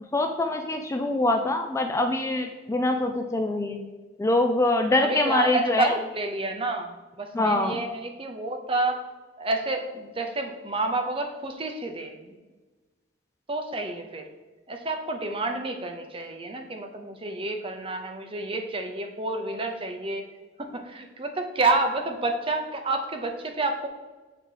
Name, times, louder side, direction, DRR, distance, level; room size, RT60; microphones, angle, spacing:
voice 1, 0.1-3.8 4.2-5.9 7.3-7.8, left 2 dB, 15° left, 5 dB, 0.3 m, -24 dB
voice 2, 5.0-9.0 9.4-12.3 13.5-14.3 14.7-20.2 20.6-23.9, right 2 dB, 30° right, 5 dB, 0.7 m, -29 dB
6.7 x 3.0 x 4.9 m, 1.2 s
head